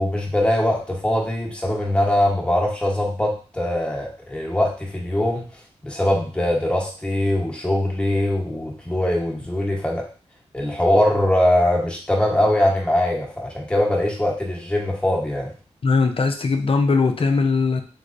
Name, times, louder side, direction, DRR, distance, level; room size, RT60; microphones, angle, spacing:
voice 1, 0.0-5.5 5.8-10.1 10.5-15.5, left 1 dB, 10° left, -2 dB, 1.1 m, -22 dB
voice 2, 15.8-17.8, left 4 dB, 50° left, 5 dB, 0.6 m, -19 dB
3.3 x 3.0 x 2.5 m, 0.38 s
cardioid pair, 50°, 12 cm